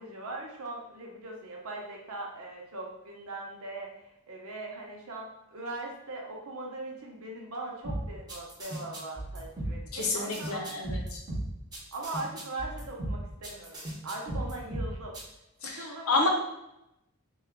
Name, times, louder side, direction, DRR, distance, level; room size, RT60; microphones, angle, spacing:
voice 1, 0.0-10.6 11.9-15.2 15.6-16.3, right 2 dB, 70° right, -1 dB, 0.8 m, -40 dB
sound 1, 7.8-15.2, right 1 dB, 20° right, 0.9 m, -35 dB
voice 2, 9.9-11.2 15.6-16.3, left 3 dB, 70° left, 0 dB, 0.7 m, -29 dB
3.6 x 2.3 x 3.6 m, 0.88 s
head